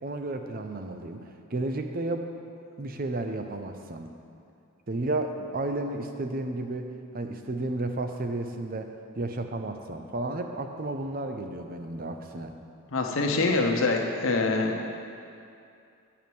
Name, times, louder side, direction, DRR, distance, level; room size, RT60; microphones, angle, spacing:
voice 1, 0.0-2.3 2.8-4.1 4.9-12.5, right 2 dB, 40° right, 6 dB, 0.6 m, -32 dB
voice 2, 12.9-14.8, left 3 dB, 65° left, 2 dB, 0.9 m, -25 dB
9.3 x 4.7 x 7.0 m, 2.5 s
head